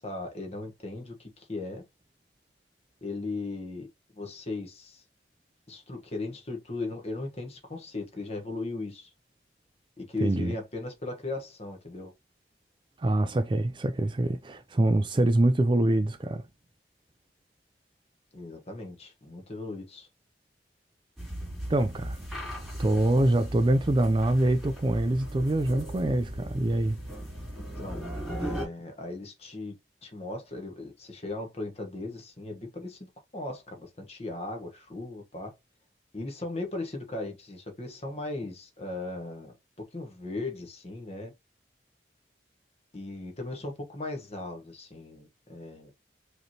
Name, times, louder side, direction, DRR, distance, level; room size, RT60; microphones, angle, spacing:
voice 1, 0.0-1.8 3.0-3.9 4.1-5.0 5.7-9.1 10.0-12.1 18.3-20.1 27.8-29.7 30.0-35.5 36.1-39.5 39.9-41.3 42.9-45.9, left 2 dB, 35° left, 1.2 m, -37 dB
voice 2, 10.2-10.5 13.0-16.4 21.7-22.2 22.8-27.0, right 1 dB, 30° right, 0.4 m, -25 dB
sound 1, 21.2-28.7, right 1 dB, ahead, 2.5 m, -38 dB
5.0 x 3.2 x 2.9 m
head